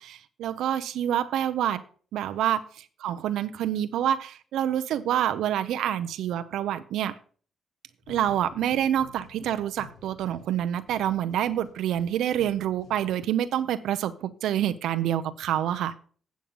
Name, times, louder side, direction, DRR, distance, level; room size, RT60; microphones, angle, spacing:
voice 1, 0.0-1.8 2.1-2.6 3.0-7.2 8.1-15.9, right 11 dB, 90° right, 0.6 m, -27 dB
sound 1, 8.0-13.6, left 5 dB, 75° left, 2.3 m, -52 dB
8.7 x 7.3 x 5.4 m
cardioid pair, 115°, 0 cm